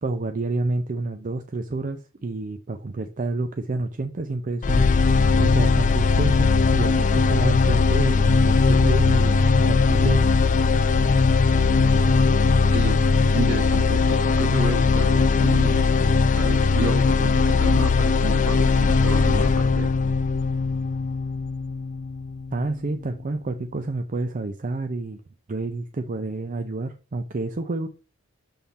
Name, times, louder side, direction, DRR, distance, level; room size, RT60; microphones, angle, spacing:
voice 1, 0.0-4.9 5.4-10.3 22.5-25.2 25.5-27.9, right 2 dB, 35° right, 0.5 m, -29 dB
sound 1, 4.6-22.6, left 4 dB, 35° left, 0.4 m, -19 dB
voice 2, 13.3-15.8 16.4-19.9, right 3 dB, 60° right, 1.3 m, -31 dB
7.1 x 3.7 x 4.1 m
head